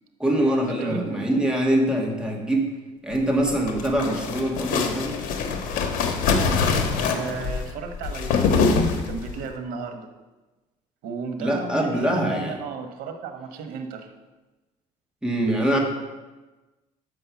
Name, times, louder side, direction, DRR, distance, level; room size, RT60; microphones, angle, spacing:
voice 1, 0.2-2.7 3.0-5.1 11.4-12.6 15.2-15.8, right 1 dB, 5° right, 0 dB, 1.5 m, -23 dB
voice 2, 0.8-1.3 7.1-10.1 11.0-14.1, right 5 dB, 85° right, 6 dB, 1.1 m, -34 dB
sound 1, 3.4-9.4, left 5 dB, 75° left, 1.1 m, -24 dB
6.3 x 5.4 x 7.0 m, 1.2 s
cardioid pair, 125°, 14 cm